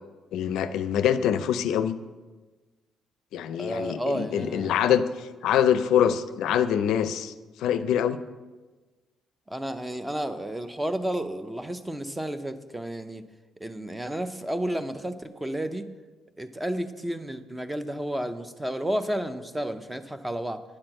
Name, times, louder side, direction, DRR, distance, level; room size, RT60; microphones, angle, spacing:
voice 1, 0.3-2.0 3.3-7.3 7.6-8.2, left 9 dB, 80° left, 11 dB, 0.4 m, -24 dB
voice 2, 3.6-4.8 9.5-13.2 13.6-15.9 16.4-20.6, right 1 dB, 10° right, 10 dB, 0.5 m, -31 dB
9.5 x 4.4 x 7.6 m, 1.3 s
cardioid pair, 120°, 0 cm